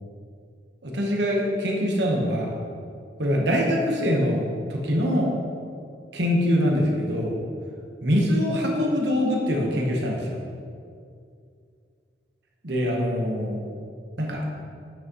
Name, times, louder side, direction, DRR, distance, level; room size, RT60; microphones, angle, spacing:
voice 1, 0.8-2.6 3.2-5.3 6.1-7.4 8.0-10.4 12.6-13.6 14.2-14.4, equal, 70° right, -1 dB, 1.3 m, -24 dB
8.6 x 6.2 x 3.1 m, 2.3 s
head